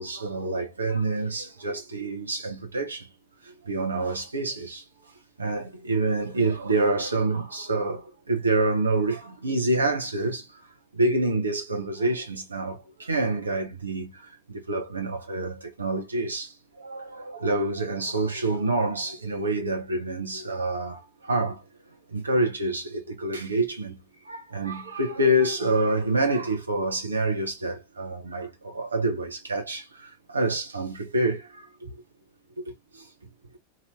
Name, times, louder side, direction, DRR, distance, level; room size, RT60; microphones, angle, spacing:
voice 1, 0.0-3.1 3.4-4.8 5.4-10.7 10.9-21.6 22.1-24.0 24.2-32.0 32.6-32.7 32.9-33.1, right 2 dB, 75° right, 1.1 m, -27 dB
3.0 x 2.8 x 2.5 m
figure-of-eight pair, 90°, 0 cm